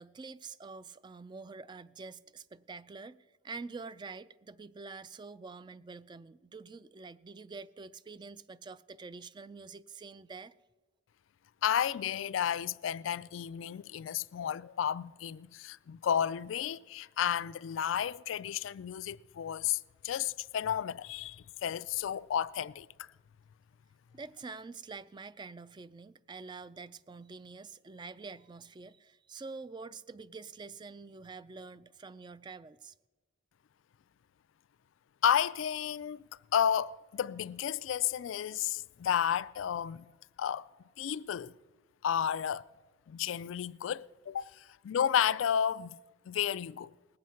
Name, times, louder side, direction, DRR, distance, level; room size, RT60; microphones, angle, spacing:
voice 1, 0.0-3.2 3.4-10.5 24.1-32.9, right 4 dB, 25° right, 0.3 m, -46 dB
voice 2, 11.6-23.1 35.2-36.2 36.5-40.1 40.4-40.7 41.0-41.5 42.0-42.6 43.1-46.0 46.3-46.9, left 9 dB, 90° left, 0.3 m, -32 dB
19.5 x 7.7 x 5.7 m
head